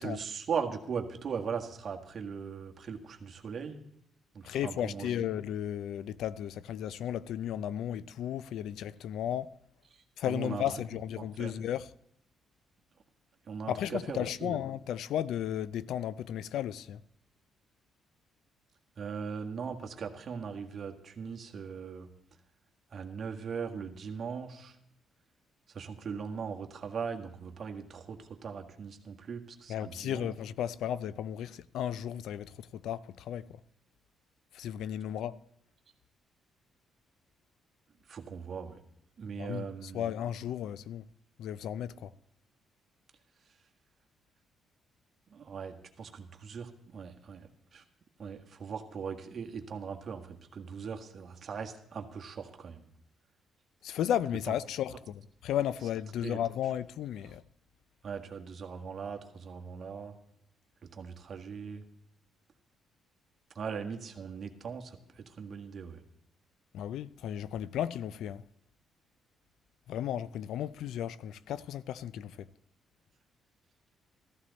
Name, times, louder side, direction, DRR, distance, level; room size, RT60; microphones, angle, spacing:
voice 1, 0.0-3.8 4.3-5.3 9.9-10.6 11.2-11.5 13.5-14.6 19.0-22.1 22.9-24.7 25.7-30.3 38.1-38.8 39.2-40.1 45.3-47.8 48.2-52.9 56.2-56.4 58.0-60.1 60.8-61.8 63.5-66.0, right 6 dB, 50° right, 1.7 m, -39 dB
voice 2, 4.4-9.6 10.2-11.9 13.7-17.0 29.7-33.6 34.5-35.4 39.4-41.1 41.4-42.1 53.8-57.4 66.7-68.4 69.9-72.5, left 10 dB, 80° left, 0.4 m, -34 dB
14.5 x 14.0 x 4.1 m
cardioid pair, 90°, 0 cm